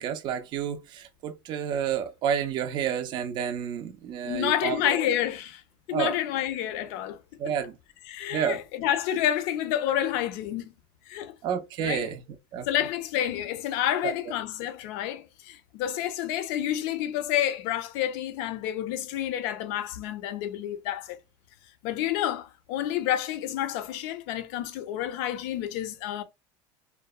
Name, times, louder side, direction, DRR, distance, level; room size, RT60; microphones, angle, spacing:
voice 1, 0.0-5.1 5.9-6.1 7.4-7.8 8.3-8.6 11.4-12.2 12.5-12.7 14.0-14.1, right 8 dB, 40° right, 0.3 m, -30 dB
voice 2, 4.2-5.6 5.9-7.2 8.1-10.7 11.1-11.3 11.8-12.1 12.7-21.2 21.8-26.2, left 11 dB, 70° left, 0.5 m, -29 dB
2.7 x 2.0 x 2.2 m
supercardioid pair, 140°, 12 cm